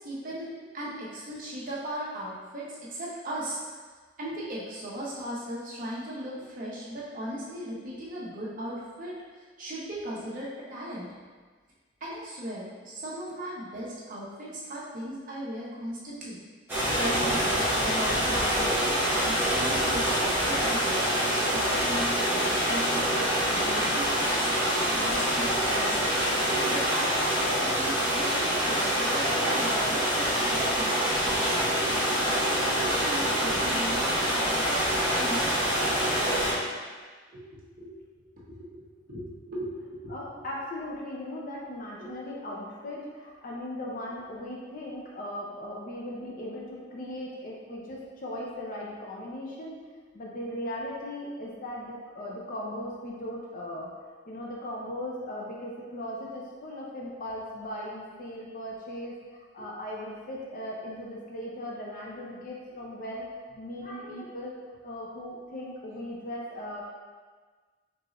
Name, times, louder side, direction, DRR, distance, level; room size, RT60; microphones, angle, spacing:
voice 1, 0.0-3.6 4.2-11.1 12.0-16.4 17.0-21.0 21.5-24.5 24.9-26.2 26.7-30.9 31.5-31.7 32.2-36.3 37.3-37.4 37.7-37.9 38.1-40.1 42.0-42.1, right 1 dB, 50° right, -7 dB, 1.0 m, -38 dB
sound 1, 16.7-36.5, equal, 10° right, 1.1 m, -26 dB
voice 2, 40.1-49.8 50.1-53.9 54.3-64.5 64.8-66.8, left 1 dB, 50° left, -3 dB, 0.6 m, -38 dB
4.6 x 3.0 x 2.5 m, 1.4 s
head